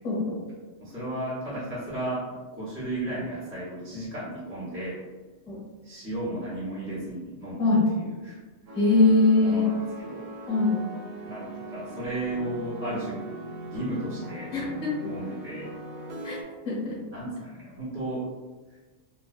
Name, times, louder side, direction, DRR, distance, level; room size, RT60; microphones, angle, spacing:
voice 1, 0.0-0.3 5.5-5.6 7.6-7.8 8.7-9.7 10.5-10.8 14.5-14.9 16.2-16.4 16.6-16.9, left 3 dB, 35° left, -6 dB, 1.1 m, -22 dB
voice 2, 0.8-5.0 5.8-7.6 8.0-8.4 9.4-10.3 11.2-13.2 13.6-14.5 15.0-15.7 17.1-18.3, right 1 dB, 10° right, -10 dB, 0.7 m, -34 dB
sound 1, 8.7-16.4, right 1 dB, 70° right, 0.4 m, -39 dB
2.9 x 2.3 x 2.4 m, 1.3 s
omnidirectional pair, 1.4 m